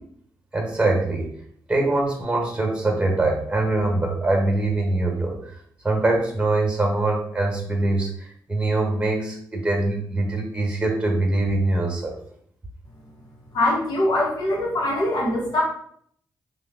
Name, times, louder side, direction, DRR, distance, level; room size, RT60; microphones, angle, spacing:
voice 1, 0.5-1.3 1.7-5.4 5.8-12.1, right 2 dB, 15° right, 1 dB, 1.1 m, -23 dB
voice 2, 13.5-15.6, left 1 dB, 80° left, -4 dB, 1.0 m, -22 dB
3.2 x 2.3 x 3.6 m, 0.65 s
cardioid pair, 70°, 7 cm